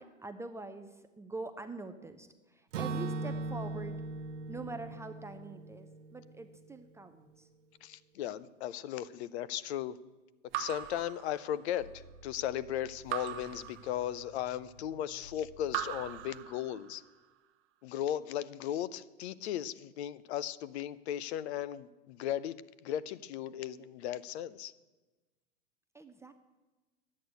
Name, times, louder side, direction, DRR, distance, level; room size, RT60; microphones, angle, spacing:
voice 1, 0.0-4.0 4.5-7.5 25.9-26.3, right 3 dB, 10° right, 7 dB, 0.4 m, -44 dB
Acoustic guitar / Strum, 2.7-6.7, right 3 dB, 75° right, 1.3 m, -39 dB
sound 1, 3.3-5.0 11.7-16.3, right 1 dB, 85° left, 3.0 m, -56 dB
voice 2, 7.8-10.0 10.5-17.0 17.8-22.5 22.8-24.7, left 11 dB, 60° left, 16 dB, 0.7 m, -36 dB
Raindrop / Drip, 10.5-11.9 13.1-14.5 15.7-17.1, right 12 dB, 35° right, 1.1 m, -40 dB
11.0 x 8.7 x 8.0 m, 1.2 s
hypercardioid pair, 115°, 37 cm